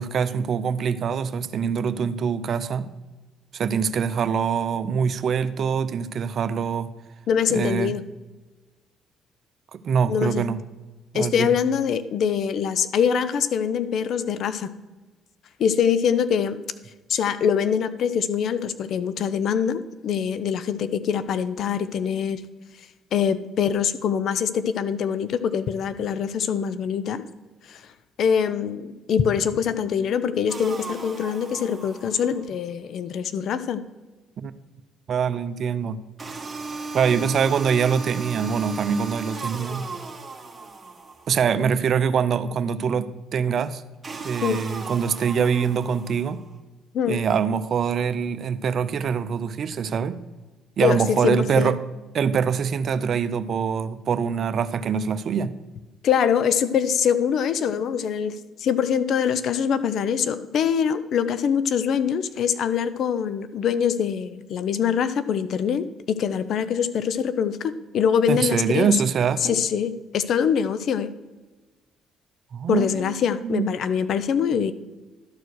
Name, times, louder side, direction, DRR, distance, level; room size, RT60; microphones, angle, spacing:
voice 1, 0.0-2.9 3.5-6.9 7.5-8.0 9.7-10.6 11.1-11.6 34.4-34.5 35.1-36.0 36.9-39.9 41.3-43.8 44.2-46.4 47.1-50.2 50.8-51.8 52.1-55.5 68.3-69.6 72.5-73.2 73.4-73.7, right 6 dB, 55° right, 13 dB, 0.5 m, -24 dB
voice 2, 7.3-8.0 10.1-10.4 11.1-14.7 15.6-16.6 17.1-22.4 23.1-27.2 27.7-27.8 28.2-33.8 44.4-44.6 46.9-47.2 50.8-51.8 56.0-68.9 69.4-71.1 72.7-74.7, left 7 dB, 65° left, 13 dB, 0.6 m, -24 dB
sound 1, 30.5-32.5 36.2-41.5 44.0-46.4, right 3 dB, 30° right, 1.4 m, -36 dB
12.0 x 4.6 x 6.3 m, 1.2 s
supercardioid pair, 70°, 0 cm